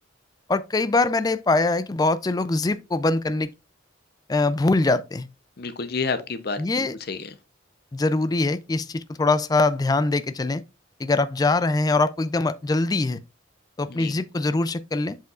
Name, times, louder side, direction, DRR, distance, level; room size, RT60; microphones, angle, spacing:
voice 1, 0.5-3.5 4.3-5.3 6.6-7.0 7.9-10.6 11.0-13.2 13.8-15.2, left 3 dB, 20° left, 0.3 m, -23 dB
voice 2, 5.6-7.3 13.9-14.1, left 4 dB, 50° left, 0.7 m, -30 dB
7.6 x 5.7 x 2.4 m
head